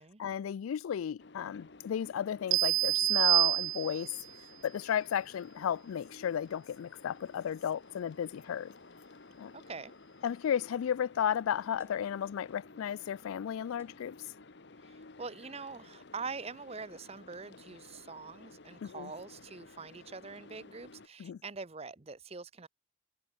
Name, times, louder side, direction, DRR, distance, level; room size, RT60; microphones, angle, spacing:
voice 1, 0.2-4.1 4.6-8.7 9.4-9.5 10.2-14.3 18.8-19.1 21.2-21.4, left 9 dB, 90° left, 0.3 m, -34 dB
sound 1, 1.2-21.1, left 3 dB, 55° left, 1.0 m, -54 dB
sound 2, 2.5-4.2, right 18 dB, 70° right, 0.4 m, -27 dB
sound 3, 10.2-10.4 11.8-12.2 13.8-14.2, right 1 dB, 10° right, 4.1 m, -61 dB
voice 2, 14.8-22.7, right 4 dB, 30° right, 0.8 m, -44 dB
head